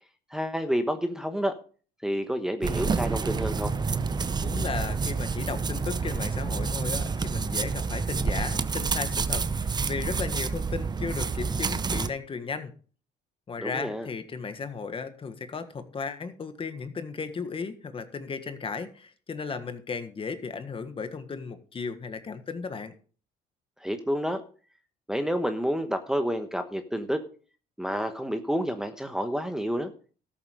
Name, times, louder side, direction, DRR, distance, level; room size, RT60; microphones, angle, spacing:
voice 1, 0.3-1.5 2.0-3.7 13.6-14.1 23.8-24.4 25.1-27.2 27.8-29.9, equal, 5° right, 6 dB, 1.1 m, -29 dB
sound 1, 2.6-12.1, right 5 dB, 25° right, 0.7 m, -28 dB
voice 2, 4.4-12.7 13.5-22.9, left 5 dB, 30° left, 9 dB, 1.5 m, -35 dB
13.0 x 7.7 x 5.2 m, 0.41 s
cardioid pair, 110°, 17 cm